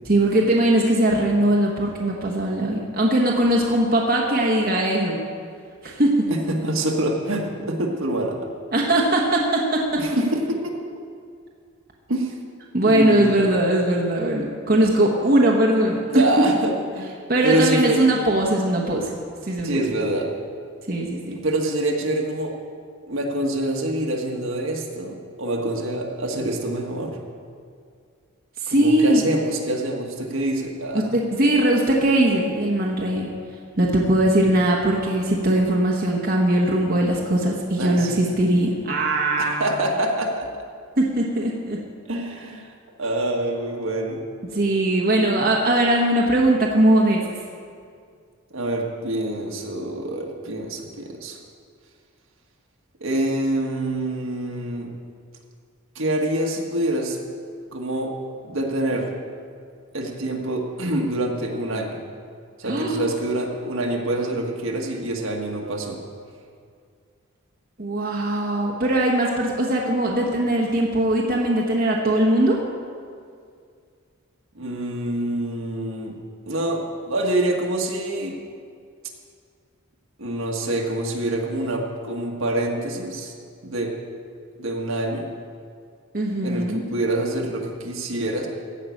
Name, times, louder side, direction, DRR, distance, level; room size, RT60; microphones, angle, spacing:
voice 1, 0.0-5.2 5.8-6.4 8.7-10.0 12.7-16.2 17.3-19.1 19.4-19.8 20.9-21.4 28.6-29.2 30.9-33.3 33.7-39.6 41.0-41.8 44.5-47.2 62.6-63.1 67.8-72.6 86.1-86.8, right 1 dB, 45° right, -2 dB, 1.2 m, -20 dB
voice 2, 6.3-8.4 10.0-10.8 12.1-12.3 12.8-13.2 16.1-18.0 19.6-20.3 21.4-22.5 23.1-27.2 28.7-31.0 37.8-38.2 39.4-40.5 42.1-42.7 43.0-44.2 48.5-51.4 53.0-54.9 55.9-57.2 57.7-58.1 58.4-59.1 59.9-62.0 62.6-66.0 74.5-76.1 76.5-78.4 80.2-83.3 83.6-83.9 84.6-85.3 86.4-88.5, right 1 dB, 70° right, 1 dB, 1.6 m, -26 dB
15.5 x 5.8 x 8.4 m, 2.2 s
head